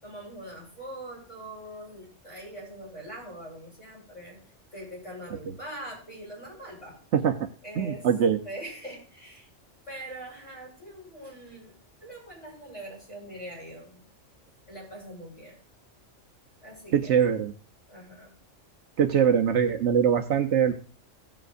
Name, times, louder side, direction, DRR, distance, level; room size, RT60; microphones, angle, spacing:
voice 1, 0.0-4.4 4.7-7.0 7.6-8.1 8.4-9.5 9.9-11.7 12.0-14.1 14.7-15.6 16.6-17.2 17.9-18.3, right 1 dB, 25° left, -5 dB, 5.5 m, -42 dB
voice 2, 7.1-7.5 7.8-8.4 16.9-17.5 19.0-20.7, right 8 dB, 70° right, 7 dB, 1.0 m, -22 dB
17.0 x 7.4 x 2.5 m, 0.41 s
omnidirectional pair, 1.3 m